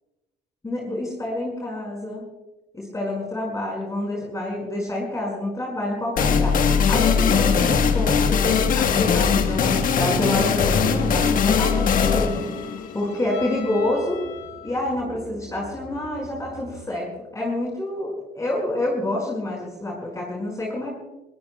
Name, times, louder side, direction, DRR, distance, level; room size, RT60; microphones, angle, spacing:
voice 1, 0.6-2.3 2.7-12.4 12.9-14.2 14.6-20.9, left 1 dB, 20° left, -3 dB, 5.5 m, -28 dB
sound 1, 6.2-13.6, left 6 dB, 55° left, 1.4 m, -20 dB
Bowed string instrument, 10.3-14.9, left 10 dB, 90° left, 3.4 m, -41 dB
sound 2, 11.4-16.9, right 1 dB, 20° right, 2.9 m, -40 dB
22.5 x 19.0 x 2.3 m, 1.0 s
cardioid pair, 110°, 17 cm